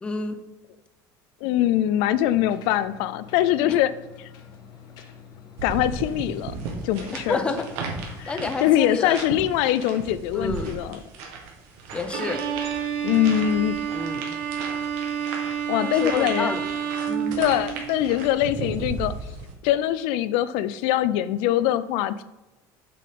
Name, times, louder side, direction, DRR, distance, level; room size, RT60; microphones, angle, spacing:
voice 1, 0.0-0.4 3.7-3.8 7.3-7.7 8.3-9.2 10.3-10.8 11.9-12.4 13.9-14.3 15.8-16.6 17.1-17.4, left 3 dB, 10° left, 8 dB, 0.5 m, -29 dB
voice 2, 1.4-3.9 4.2-4.3 5.6-6.5 6.8-7.5 8.2-11.0 13.0-13.8 15.7-16.6 17.4-19.1 19.6-22.2, left 12 dB, 70° left, 14 dB, 0.3 m, -23 dB
sound 1, 2.2-8.6, left 7 dB, 50° left, 0.9 m, -47 dB
sound 2, 5.6-19.5, right 4 dB, 85° right, 1.7 m, -36 dB
Bowed string instrument, 12.1-18.0, right 8 dB, 70° right, 0.9 m, -29 dB
7.4 x 5.8 x 3.7 m, 1.0 s
cardioid pair, 170°, 9 cm